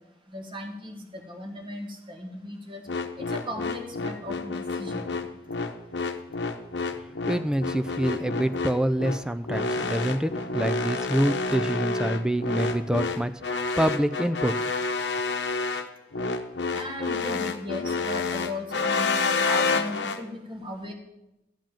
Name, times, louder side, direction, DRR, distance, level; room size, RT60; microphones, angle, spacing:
voice 1, 0.3-2.8 3.2-5.1 16.7-20.9, left 1 dB, 30° right, 3 dB, 1.8 m, -37 dB
sound 1, 2.9-20.2, left 3 dB, 85° left, 0.9 m, -29 dB
voice 2, 6.9-14.6, right 1 dB, 5° right, 10 dB, 0.4 m, -26 dB
13.5 x 5.0 x 9.0 m, 0.92 s
head